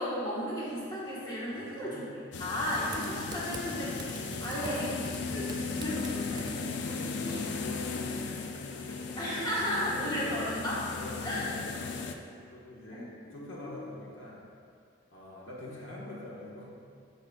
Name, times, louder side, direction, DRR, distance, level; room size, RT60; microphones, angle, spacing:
voice 1, 0.0-2.0 2.4-5.0 5.3-6.5 7.2-7.3 9.2-10.9 11.2-11.5 12.9-13.9, equal, 20° left, -8 dB, 1.4 m, -34 dB
voice 2, 1.5-2.1 4.6-5.0 6.5-9.0 9.7-10.5 11.0-14.4 15.1-16.7, left 1 dB, 80° left, -5 dB, 1.5 m, -45 dB
sound 1, 2.3-12.1, left 4 dB, 65° left, 0.4 m, -36 dB
Typing, 2.6-7.6, right 2 dB, 20° right, 0.3 m, -46 dB
12.0 x 4.6 x 2.4 m, 2.3 s
head